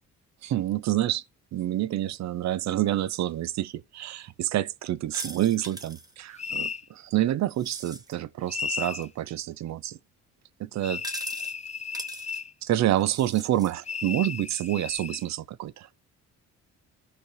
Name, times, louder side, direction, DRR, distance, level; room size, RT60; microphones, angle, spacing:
voice 1, 0.4-1.2 1.5-10.0 10.6-11.0 12.6-15.9, right 13 dB, 65° right, 0.6 m, -28 dB
sound 1, 5.1-6.1 7.5-8.1 8.7-9.1 11.0-11.5 11.9-12.4 13.0-13.7, right 2 dB, 10° right, 1.1 m, -41 dB
sound 2, 6.4-6.8 8.5-9.1 10.8-12.5 13.8-15.2, left 6 dB, 25° left, 0.5 m, -34 dB
15.0 x 5.3 x 3.2 m
cardioid pair, 90°, 30 cm